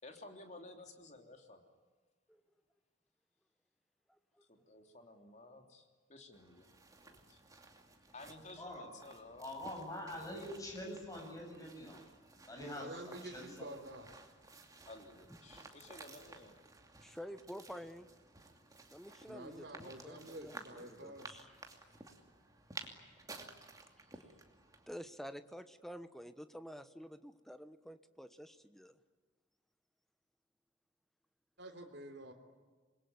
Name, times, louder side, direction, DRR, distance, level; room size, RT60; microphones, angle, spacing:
voice 1, 0.0-1.6 4.5-5.8 6.1-6.7 7.0-7.4 8.1-9.5 14.9-16.5, left 2 dB, 35° left, 4 dB, 3.3 m, -54 dB
sound 1, 6.3-24.9, right 3 dB, 20° right, 2.7 m, -55 dB
voice 2, 9.4-12.0 12.5-13.7, left 1 dB, 20° left, 1 dB, 7.9 m, -45 dB
voice 3, 12.6-14.1 19.3-21.4 31.6-32.3, right 1 dB, 60° right, 4 dB, 3.6 m, -49 dB
voice 4, 17.0-18.1 18.9-21.5 24.9-29.0, equal, ahead, 10 dB, 1.2 m, -49 dB
27.0 x 22.0 x 9.7 m, 1.4 s
head